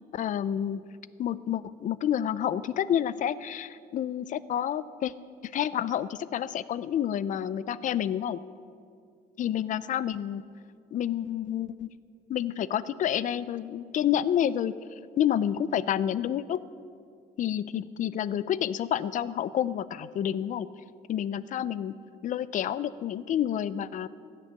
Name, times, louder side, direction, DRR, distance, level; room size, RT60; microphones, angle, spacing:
voice 1, 0.1-0.8 1.2-5.1 5.4-8.4 9.4-10.4 10.9-11.9 12.3-14.7 15.2-16.6 17.4-20.7 21.1-21.9 22.2-24.1, left 10 dB, 50° left, 17 dB, 0.5 m, -29 dB
15.0 x 6.6 x 9.5 m, 2.3 s
cardioid pair, 110°, 17 cm